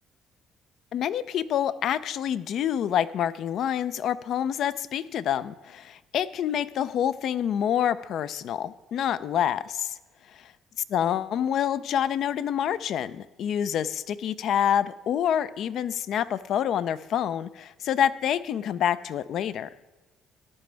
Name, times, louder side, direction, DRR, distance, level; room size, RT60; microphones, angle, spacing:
voice 1, 0.9-10.0 10.3-10.5 10.9-19.7, left 9 dB, 65° left, 15 dB, 0.5 m, -27 dB
14.0 x 10.5 x 3.4 m, 1.2 s
cardioid pair, 120°, 0 cm